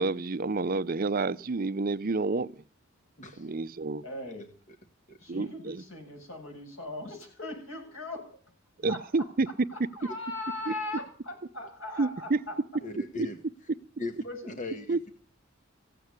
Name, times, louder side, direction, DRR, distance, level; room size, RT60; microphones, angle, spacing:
voice 1, 0.0-2.6 3.4-4.0 5.3-5.8 8.8-9.9 10.7-10.8 12.0-12.4 14.9-15.1, right 3 dB, 45° right, 0.6 m, -29 dB
voice 2, 3.2-3.5 5.1-5.2 12.8-13.4 14.0-14.1 14.6-15.0, left 2 dB, 40° left, 1.6 m, -37 dB
voice 3, 4.0-4.4 5.2-8.3 8.9-9.0 9.9-12.5 14.2-14.5, left 2 dB, 90° left, 7.8 m, -39 dB
16.0 x 8.5 x 9.5 m
head